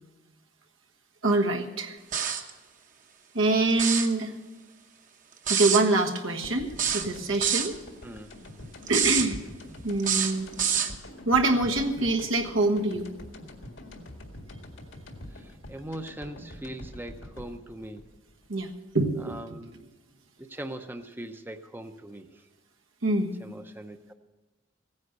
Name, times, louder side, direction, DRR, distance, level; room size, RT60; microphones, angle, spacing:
voice 1, 1.2-2.0 3.3-4.3 5.5-7.8 8.9-9.4 9.8-10.5 11.2-13.1 18.5-19.4 23.0-23.3, right 2 dB, 90° right, 3 dB, 1.4 m, -25 dB
sound 1, 2.1-2.5 3.7-4.1 5.5-5.8 6.8-7.7 8.9-9.3 10.0-10.9, right 8 dB, 40° right, 0.9 m, -26 dB
sound 2, 6.4-19.2, left 1 dB, 80° left, 1.9 m, -45 dB
voice 2, 15.3-18.0 19.2-19.8 20.4-22.3 23.4-24.1, right 1 dB, 10° right, 7 dB, 0.6 m, -41 dB
16.0 x 9.7 x 6.6 m, 1.1 s
head